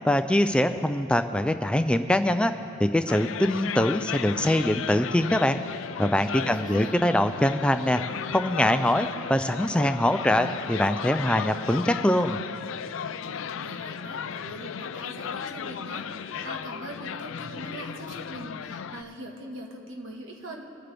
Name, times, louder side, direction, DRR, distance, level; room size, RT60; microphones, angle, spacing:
voice 1, 0.0-2.5 2.8-5.6 6.0-8.0 8.3-12.4, left 1 dB, 5° left, 8 dB, 0.3 m, -23 dB
sound 1, 3.1-19.0, left 7 dB, 70° left, 0.4 m, -35 dB
voice 2, 6.3-6.9 13.2-20.6, right 1 dB, 70° right, 0 dB, 1.6 m, -42 dB
25.0 x 9.7 x 3.4 m, 2.7 s
head